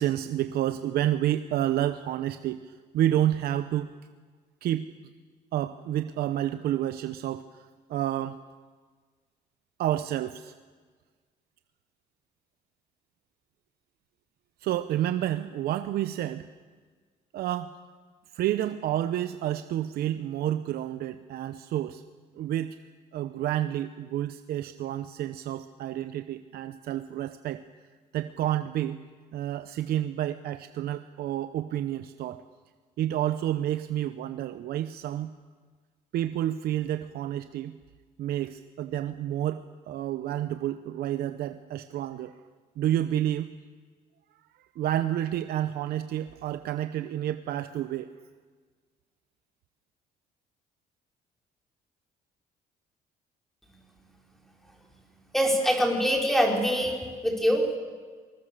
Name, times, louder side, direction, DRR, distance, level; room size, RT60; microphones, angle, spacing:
voice 1, 0.0-3.9 4.6-4.9 5.5-8.4 9.8-10.5 14.6-16.5 17.3-17.8 18.3-22.0 22.4-22.8 23.1-27.6 28.1-29.0 29.3-32.4 33.0-35.3 36.1-37.7 38.2-42.4 42.8-43.5 44.8-48.1, right 12 dB, 70° right, 11 dB, 0.8 m, -29 dB
voice 2, 55.3-57.0 57.2-57.8, equal, ahead, 1 dB, 4.6 m, -24 dB
26.5 x 20.5 x 6.8 m, 1.5 s
cardioid pair, 110°, 17 cm